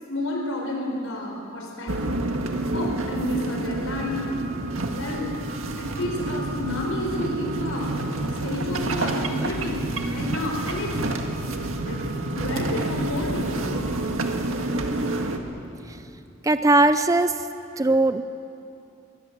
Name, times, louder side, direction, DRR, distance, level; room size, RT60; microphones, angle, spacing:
voice 1, 0.1-2.2 2.7-4.3 4.9-5.3 5.8-7.9 8.4-9.8 10.1-10.9 11.8-12.0 12.3-13.6, left 1 dB, 85° left, -1 dB, 4.5 m, -30 dB
sound 1, 1.9-15.4, right 2 dB, 85° right, 1.9 m, -28 dB
voice 2, 16.4-17.5 17.8-18.2, right 2 dB, 15° right, 10 dB, 0.5 m, -19 dB
25.5 x 22.5 x 7.5 m, 2.7 s
head